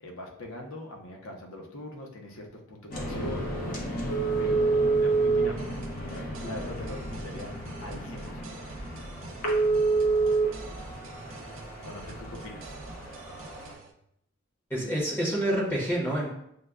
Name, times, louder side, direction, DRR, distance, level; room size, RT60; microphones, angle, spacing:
voice 1, 0.0-3.5 4.4-7.5 7.8-8.5 11.8-12.7, left 1 dB, 90° left, 1 dB, 0.8 m, -42 dB
sound 1, 2.9-13.7, right 3 dB, 45° left, 0.8 m, -29 dB
sound 2, 5.6-13.9, right 2 dB, 75° right, 0.5 m, -46 dB
voice 2, 14.7-16.3, right 1 dB, 10° left, -5 dB, 0.9 m, -27 dB
6.4 x 2.2 x 2.3 m, 0.75 s
head